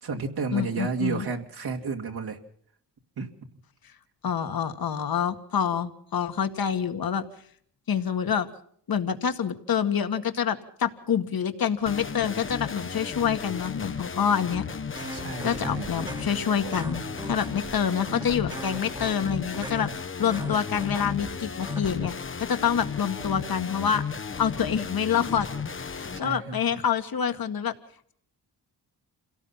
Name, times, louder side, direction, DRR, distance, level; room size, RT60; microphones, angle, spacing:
voice 1, 0.0-2.4 3.2-3.3 15.1-15.9 26.1-26.6, right 4 dB, 65° right, 1 dB, 2.3 m, -31 dB
voice 2, 0.5-1.3 4.2-7.2 7.9-8.5 8.9-14.6 15.4-22.1 22.4-24.0 24.4-25.5 25.9-27.7, left 8 dB, 60° left, 8 dB, 1.9 m, -27 dB
sound 1, 11.9-26.2, left 6 dB, 30° left, 0.9 m, -35 dB
sound 2, 15.0-22.1, right 2 dB, 10° right, 1.4 m, -40 dB
27.5 x 17.5 x 5.7 m, 0.63 s
cardioid pair, 100°, 41 cm